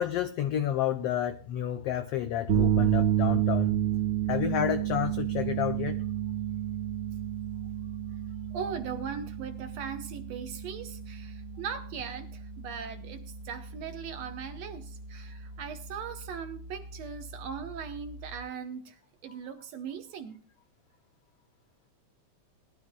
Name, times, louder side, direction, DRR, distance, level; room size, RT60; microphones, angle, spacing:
voice 1, 0.0-3.8 4.3-6.0, left 10 dB, 80° left, 1.3 m, -30 dB
sound 1, 2.5-18.4, right 10 dB, 50° right, 1.4 m, -31 dB
voice 2, 8.5-20.4, right 7 dB, 70° right, 1.9 m, -39 dB
20.0 x 12.5 x 2.2 m
omnidirectional pair, 3.5 m